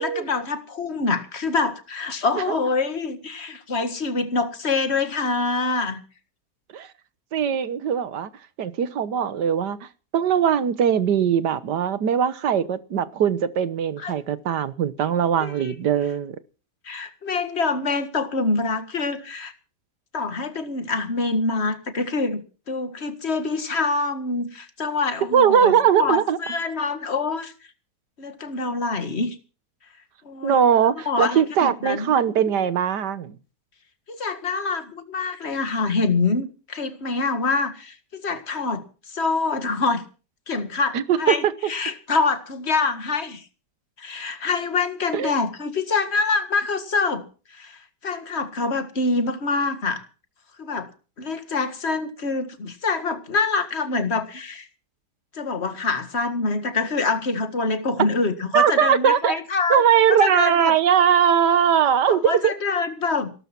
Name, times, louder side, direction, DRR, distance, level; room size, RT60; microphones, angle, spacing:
voice 1, 0.0-6.0 14.0-14.2 15.4-15.7 16.8-19.5 20.1-27.5 28.2-29.4 30.2-30.6 31.1-32.2 34.1-40.0 40.5-43.4 44.0-47.2 47.5-50.0 50.6-50.9 51.2-54.7 55.3-59.8 60.1-60.8 62.1-63.3, left 3 dB, 40° left, 10 dB, 2.0 m, -25 dB
voice 2, 7.3-8.3 8.6-9.8 10.1-16.4 25.3-26.4 30.4-33.4 40.9-41.4 45.1-45.3 58.5-59.3 59.7-62.5, right 8 dB, 85° right, 15 dB, 1.8 m, -20 dB
17.5 x 12.5 x 6.0 m, 0.37 s
omnidirectional pair, 1.8 m